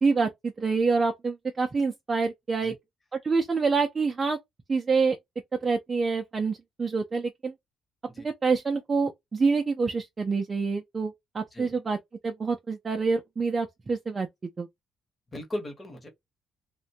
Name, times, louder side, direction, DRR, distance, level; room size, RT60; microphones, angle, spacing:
voice 1, 0.0-2.7 3.2-4.4 4.7-5.2 5.6-7.5 8.2-12.0 12.2-14.3 14.6-14.7, right 4 dB, 25° right, 0.4 m, -26 dB
voice 2, 15.3-16.1, left 1 dB, 20° left, 0.9 m, -37 dB
2.5 x 2.1 x 2.7 m
cardioid pair, 140°, 0 cm